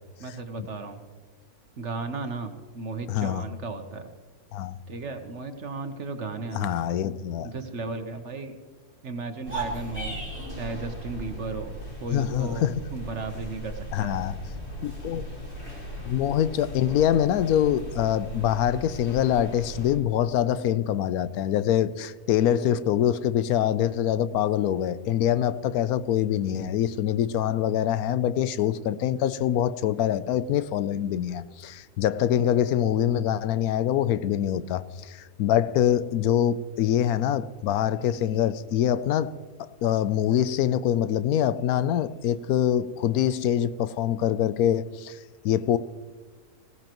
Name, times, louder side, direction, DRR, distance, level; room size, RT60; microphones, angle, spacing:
voice 1, 0.2-1.0 1.8-4.1 4.9-6.7 7.4-8.6 9.0-10.2 10.5-11.7 12.0-14.2, right 3 dB, 55° right, 1.3 m, -35 dB
voice 2, 3.1-3.4 4.5-4.8 6.5-7.5 12.1-12.8 13.9-14.4 14.8-15.3 16.0-39.3 39.6-45.2 45.4-45.8, left 10 dB, 80° left, 1.1 m, -24 dB
sound 1, 9.4-19.9, equal, 55° left, 4.6 m, -38 dB
sound 2, 9.4-10.5, right 3 dB, 5° left, 3.2 m, -34 dB
19.0 x 17.5 x 3.0 m
omnidirectional pair, 1.6 m